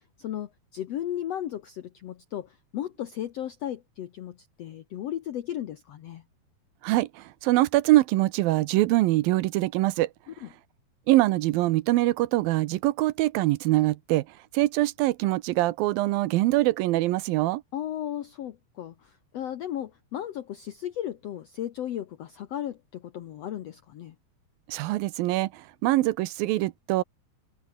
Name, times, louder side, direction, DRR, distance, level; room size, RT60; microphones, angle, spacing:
voice 1, 0.2-6.2 10.4-10.5 17.7-24.1, left 11 dB, 75° left, 1.5 m, -35 dB
voice 2, 6.8-10.1 11.1-14.2 14.5-17.6 24.7-27.0, right 17 dB, 80° right, 2.5 m, -23 dB
omnidirectional pair, 4.3 m